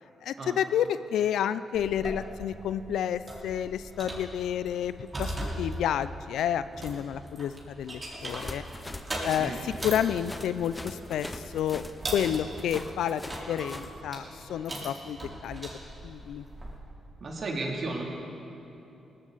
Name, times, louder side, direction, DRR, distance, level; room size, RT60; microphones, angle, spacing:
voice 1, 0.2-8.6 9.2-11.8 12.1-15.7 16.0-16.4, left 9 dB, 80° left, 14 dB, 0.4 m, -30 dB
sound 1, 1.7-16.8, right 1 dB, 30° right, 3.9 m, -40 dB
sound 2, 8.2-13.9, left 2 dB, 20° left, 1.0 m, -42 dB
voice 2, 17.2-18.0, right 3 dB, 50° right, -1 dB, 2.8 m, -33 dB
18.0 x 15.0 x 4.0 m, 3.0 s
cardioid pair, 70°, 0 cm